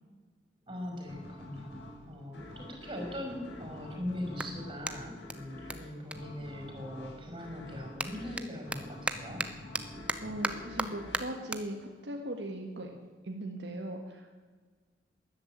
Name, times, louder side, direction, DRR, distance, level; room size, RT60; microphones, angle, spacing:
voice 1, 0.6-9.4, left 1 dB, 25° right, 1 dB, 5.6 m, -41 dB
sound 1, 1.1-12.3, left 1 dB, 65° left, 4.6 m, -48 dB
Clapping, 4.3-7.1 7.4-14.0, right 2 dB, 5° right, 0.8 m, -40 dB
voice 2, 10.2-13.0 13.2-14.3, right 1 dB, 65° right, 2 dB, 1.6 m, -39 dB
13.5 x 11.5 x 9.2 m, 1.5 s
head